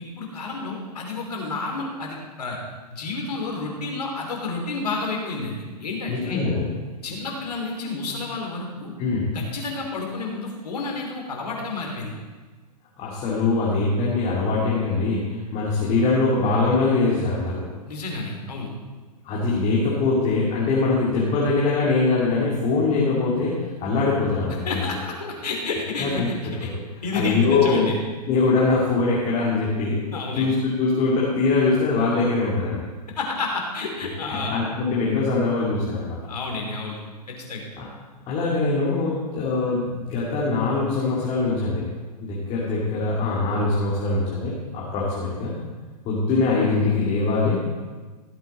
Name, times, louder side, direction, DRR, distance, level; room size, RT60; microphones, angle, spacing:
voice 1, 0.0-2.6 2.9-6.4 7.0-8.9 9.3-12.2 17.9-18.7 24.6-26.7 27.0-28.0 30.1-30.6 33.2-34.5 36.3-37.6, left 3 dB, 70° left, 0 dB, 3.3 m, -30 dB
voice 2, 6.1-6.6 9.0-9.2 13.0-17.6 19.2-24.8 26.0-26.3 27.1-27.9 28.3-30.0 30.3-32.8 34.3-36.2 37.8-37.9 38.3-41.9 42.2-45.5 46.0-47.6, left 3 dB, 30° left, -6 dB, 2.6 m, -22 dB
15.5 x 8.1 x 4.2 m, 1.4 s
figure-of-eight pair, 110°, 21 cm